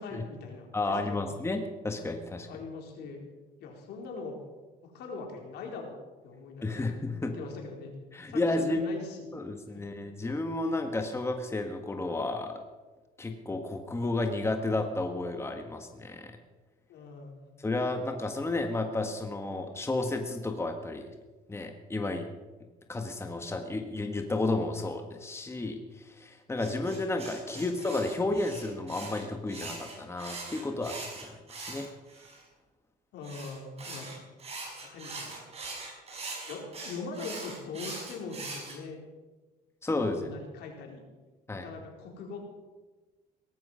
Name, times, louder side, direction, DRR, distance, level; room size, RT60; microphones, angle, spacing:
voice 1, 0.0-1.3 2.5-3.2 3.6-4.4 4.8-5.9 6.2-6.9 7.2-7.9 8.3-9.3 9.7-9.8 16.9-17.4 27.5-27.7 33.1-34.1 34.8-35.4 36.4-39.0 40.1-41.0 41.5-42.4, left 4 dB, 75° left, 1 dB, 4.4 m, -41 dB
voice 2, 0.7-2.5 6.6-7.3 8.1-8.9 9.3-12.6 13.2-16.3 17.6-21.1 21.5-22.3 22.9-25.8 26.2-31.9 39.8-40.3 41.5-41.7, left 2 dB, 15° left, 5 dB, 1.6 m, -32 dB
sound 1, 26.6-32.4 33.2-38.8, right 3 dB, 35° right, 5.9 m, -42 dB
18.5 x 13.5 x 5.7 m, 1.2 s
cardioid pair, 110°, 17 cm